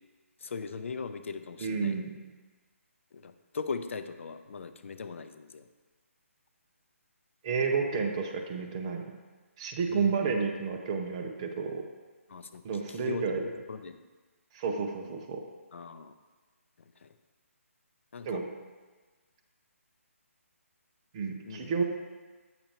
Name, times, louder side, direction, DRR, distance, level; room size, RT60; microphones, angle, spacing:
voice 1, 0.4-2.0 3.1-5.6 9.9-10.2 12.3-14.0 15.7-16.1 17.0-17.1 18.1-18.4 21.4-21.7, left 5 dB, 60° left, 9 dB, 0.5 m, -39 dB
voice 2, 1.6-2.1 7.4-9.0 9.6-11.8 12.6-13.4 14.5-15.4 18.2-18.4 21.1-21.8, right 5 dB, 25° right, 3 dB, 0.6 m, -31 dB
8.7 x 6.7 x 3.0 m, 1.3 s
hypercardioid pair, 165°, 8 cm